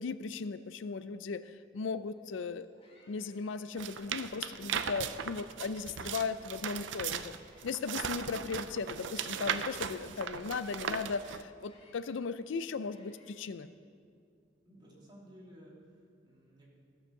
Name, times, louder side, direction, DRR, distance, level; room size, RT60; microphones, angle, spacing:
voice 1, 0.0-2.7 3.1-7.4 7.6-13.7, left 5 dB, 80° left, 14 dB, 0.4 m, -37 dB
sound 1, 2.2-2.3 2.5-5.3 5.7-9.6 10.0-13.3, left 2 dB, 30° left, 2.1 m, -65 dB
sound 2, 3.8-11.4, right 8 dB, 75° right, 0.5 m, -38 dB
voice 2, 14.6-16.7, equal, 25° right, -5 dB, 2.9 m, -55 dB
15.0 x 7.2 x 6.5 m, 2.2 s
head